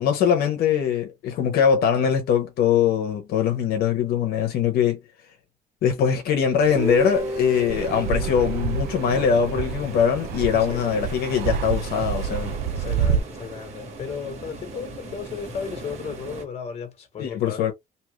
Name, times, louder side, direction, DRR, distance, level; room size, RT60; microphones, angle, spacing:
voice 1, 0.0-5.0 5.8-12.5 17.2-17.7, left 8 dB, 80° left, 0.8 m, -22 dB
sound 1, 6.6-16.4, right 2 dB, 45° right, 1.6 m, -39 dB
Guitar, 6.8-10.6, right 2 dB, 20° right, 0.5 m, -32 dB
Fixed-wing aircraft airplane, 7.7-13.2, right 8 dB, 85° right, 0.4 m, -28 dB
voice 2, 10.5-11.0 12.7-17.6, left 6 dB, 40° left, 1.2 m, -35 dB
2.9 x 2.4 x 3.1 m
cardioid pair, 145°, 16 cm